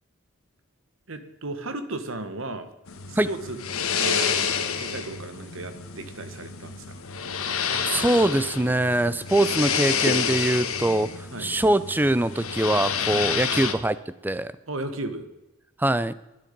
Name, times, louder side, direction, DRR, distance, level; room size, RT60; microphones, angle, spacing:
voice 1, 1.1-2.7 3.1-3.6 4.0-7.0 11.3-11.5 13.1-13.3 14.7-15.3, right 2 dB, 65° right, 10 dB, 1.4 m, -35 dB
sound 1, 2.9-13.7, left 7 dB, 75° left, 1.2 m, -29 dB
voice 2, 7.8-14.5 15.8-16.1, right 1 dB, 10° right, 16 dB, 0.4 m, -23 dB
12.0 x 10.5 x 5.3 m, 0.97 s
head